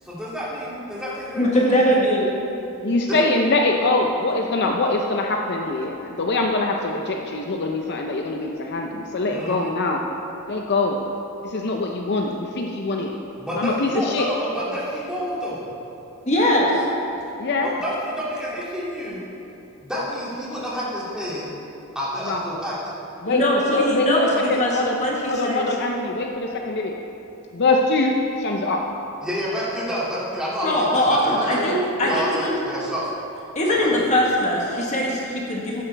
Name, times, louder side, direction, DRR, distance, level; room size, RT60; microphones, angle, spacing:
voice 1, 0.0-1.9 3.1-3.2 9.3-9.7 13.4-15.7 17.6-19.3 19.8-21.5 21.9-22.9 29.2-31.6 32.0-33.0 33.7-34.0, equal, 5° right, -8 dB, 2.5 m, -29 dB
voice 2, 1.4-2.3 16.3-16.9 23.3-25.7 30.6-32.6 33.5-35.8, equal, 35° left, -3 dB, 1.4 m, -21 dB
voice 3, 2.8-10.0 10.5-11.0 11.4-13.1 13.5-14.3 17.4-17.7 22.2-22.4 23.2-25.0 25.3-26.9 27.5-28.8 30.6-30.8 31.6-32.2, left 2 dB, 50° left, 1 dB, 0.6 m, -23 dB
13.5 x 10.0 x 3.4 m, 2.9 s
head